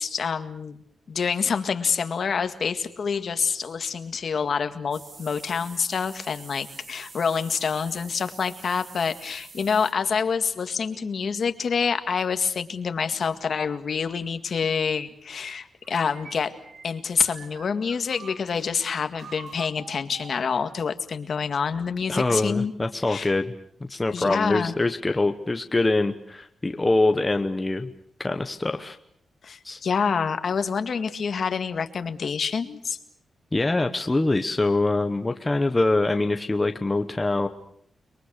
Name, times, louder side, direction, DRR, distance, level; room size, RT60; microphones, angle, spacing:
voice 1, 0.0-16.5 16.8-22.7 23.1-23.3 24.1-24.7 29.4-33.0, left 6 dB, 50° left, 8 dB, 1.9 m, -27 dB
sound 1, 4.9-9.9, right 4 dB, 40° right, 2.7 m, -46 dB
sound 2, 15.8-18.7 19.2-21.0, right 5 dB, 60° right, 2.0 m, -46 dB
voice 2, 22.1-23.5 23.9-27.9 28.2-29.0 29.6-29.8 33.5-37.5, left 2 dB, 15° left, 7 dB, 1.1 m, -24 dB
30.0 x 23.0 x 6.5 m, 0.68 s
wide cardioid pair, 165°, 0 cm